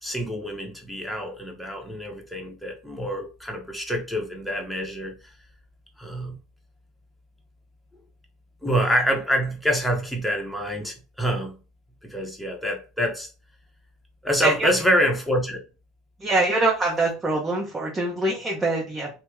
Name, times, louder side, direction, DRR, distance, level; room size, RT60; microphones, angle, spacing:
voice 1, 0.0-5.2 6.0-6.3 8.6-11.6 12.0-13.3 14.2-15.6, equal, ahead, 1.0 m, -26 dB
voice 2, 16.2-19.1, right 2 dB, 20° right, 0.9 m, -24 dB
2.8 x 2.1 x 3.6 m
hypercardioid pair, 80°, 0 cm